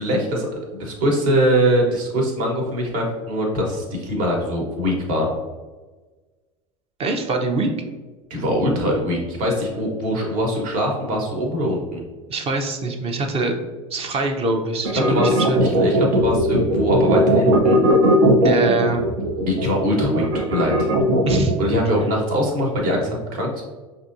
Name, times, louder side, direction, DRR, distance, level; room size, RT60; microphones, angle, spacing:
voice 1, 0.0-5.3 8.3-12.0 14.1-14.2 14.9-17.8 19.5-20.9 21.6-23.7, equal, 55° right, 0 dB, 1.3 m, -22 dB
voice 2, 7.0-7.7 12.3-13.6 13.9-15.6 18.4-19.1 21.2-21.6, right 3 dB, 35° right, 5 dB, 0.7 m, -23 dB
sound 1, 14.8-21.6, right 1 dB, 75° right, 0.7 m, -18 dB
5.4 x 2.7 x 2.6 m, 1.3 s
hypercardioid pair, 80°, 17 cm